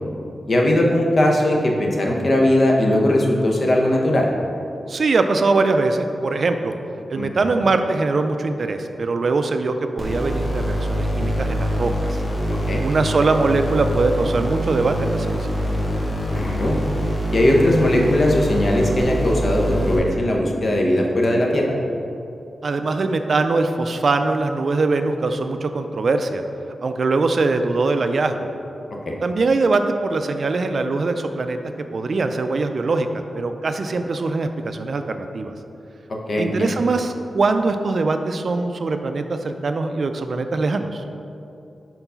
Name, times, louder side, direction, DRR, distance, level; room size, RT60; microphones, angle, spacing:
voice 1, 0.4-4.3 7.2-7.3 12.7-12.8 16.3-16.8 17.3-21.7 29.1-29.2 36.3-36.7, left 1 dB, 50° left, -1 dB, 0.8 m, -19 dB
voice 2, 4.9-6.7 7.1-12.2 12.8-15.5 22.6-26.4 26.8-28.5 29.2-31.6 31.9-35.5 36.4-41.0, right 3 dB, 55° right, 7 dB, 0.3 m, -22 dB
sound 1, 10.0-20.0, equal, 20° left, 1.1 m, -24 dB
4.5 x 3.9 x 5.6 m, 2.7 s
wide cardioid pair, 120°, 0 cm